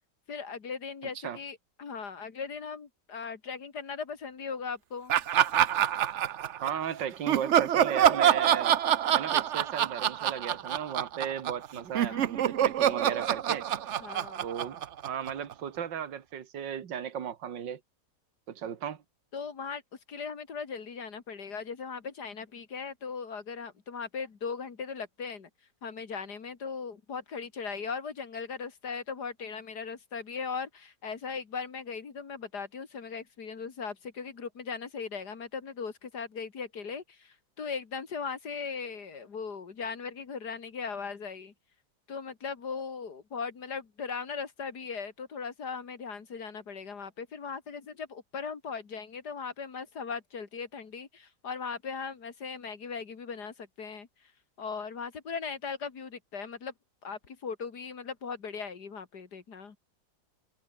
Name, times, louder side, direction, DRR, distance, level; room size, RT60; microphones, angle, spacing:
voice 1, 0.3-5.2 12.0-12.3 14.0-14.4 19.3-19.8 20.1-25.5 25.8-41.5 42.1-54.1 54.6-56.7 57.0-59.8, left 5 dB, 60° left, 2.6 m, -38 dB
Laughter, 5.1-6.8 7.3-11.7 11.9-15.5, right 10 dB, 55° right, 0.8 m, -26 dB
voice 2, 6.6-8.7 9.1-13.7 14.4-17.8 18.5-19.0, right 8 dB, 75° right, 2.3 m, -35 dB
omnidirectional pair, 2.0 m